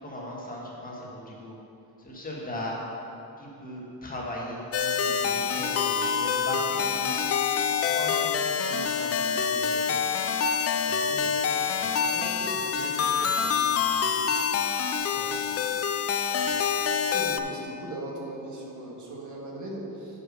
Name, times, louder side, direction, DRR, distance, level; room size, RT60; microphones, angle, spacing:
voice 1, 0.0-1.6 2.0-2.8 3.4-10.1 10.8-11.4 11.8-14.2 14.5-14.6 15.0-15.6 16.4-16.6, left 1 dB, 25° left, -4 dB, 1.7 m, -39 dB
sound 1, 4.7-17.4, left 6 dB, 40° left, 0.4 m, -26 dB
voice 2, 12.1-12.6 17.1-20.1, right 2 dB, 55° right, -2 dB, 1.7 m, -38 dB
7.8 x 5.8 x 6.1 m, 2.8 s
cardioid pair, 135°, 36 cm